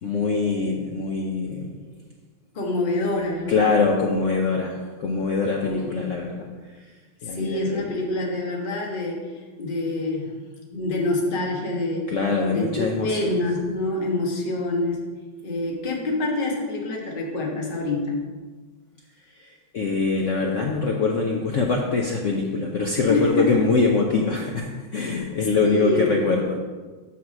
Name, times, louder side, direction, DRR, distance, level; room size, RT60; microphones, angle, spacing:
voice 1, 0.0-1.7 3.5-7.0 7.2-7.9 12.1-13.4 19.3-26.6, left 4 dB, 90° left, 0 dB, 0.6 m, -24 dB
voice 2, 2.5-3.7 5.6-5.9 7.2-10.3 10.7-12.1 12.5-15.0 15.4-18.2 23.1-23.6 25.6-26.1, left 2 dB, 30° left, -1 dB, 1.2 m, -26 dB
6.0 x 5.7 x 6.3 m, 1.4 s
omnidirectional pair, 2.3 m